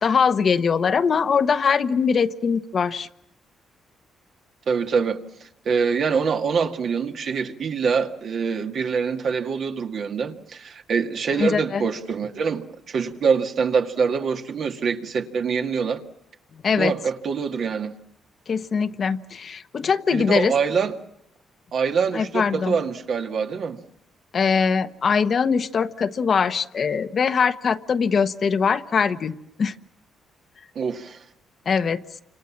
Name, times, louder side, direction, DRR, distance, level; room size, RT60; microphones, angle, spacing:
voice 1, 0.0-3.1 11.4-11.8 16.6-16.9 18.5-20.5 22.1-22.8 24.3-29.7 31.7-32.0, left 6 dB, 50° left, 1.1 m, -22 dB
voice 2, 4.7-16.0 16.8-17.9 20.1-20.9 21.7-23.8 30.8-31.2, right 6 dB, 60° right, 2.1 m, -25 dB
29.0 x 26.5 x 7.4 m
cardioid pair, 90°, 0 cm